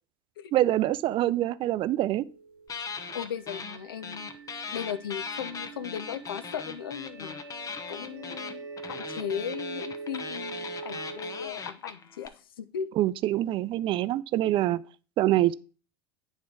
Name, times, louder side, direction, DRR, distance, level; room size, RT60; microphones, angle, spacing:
voice 1, 0.5-2.2 13.0-14.8 15.2-15.5, right 14 dB, 45° right, 0.4 m, -25 dB
sound 1, 1.8-11.5, right 4 dB, 80° right, 0.9 m, -43 dB
sound 2, 2.7-3.8 4.0-12.3, left 5 dB, 30° left, 0.8 m, -39 dB
voice 2, 3.1-4.3 4.7-7.4 7.9-8.6 8.9-12.9, left 9 dB, 85° left, 0.5 m, -37 dB
8.6 x 3.6 x 4.6 m
hypercardioid pair, 80°, 12 cm